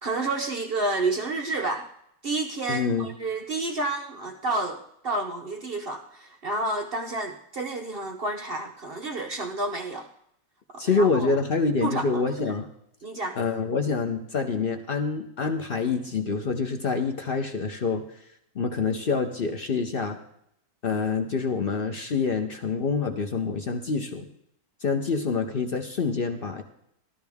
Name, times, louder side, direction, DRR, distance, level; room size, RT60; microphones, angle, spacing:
voice 1, 0.0-1.9 2.2-10.1 10.7-11.3 11.8-12.5 13.0-13.4, right 2 dB, 75° right, 4 dB, 0.5 m, -30 dB
voice 2, 2.7-3.1 10.8-12.7 13.4-18.2 18.5-20.2 20.8-24.3 24.8-26.6, left 4 dB, 65° left, 5 dB, 0.5 m, -26 dB
14.0 x 13.0 x 3.5 m, 0.75 s
omnidirectional pair, 2.1 m